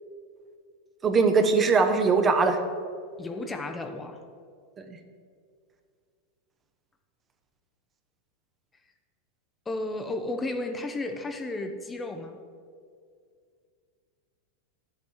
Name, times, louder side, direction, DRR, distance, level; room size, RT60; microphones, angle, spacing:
voice 1, 1.0-2.6 4.9-5.0, right 4 dB, 20° right, 7 dB, 0.8 m, -21 dB
voice 2, 3.2-4.2 9.7-12.4, left 2 dB, 15° left, 6 dB, 0.7 m, -33 dB
10.5 x 7.5 x 4.6 m, 2.2 s
supercardioid pair, 130°, 0 cm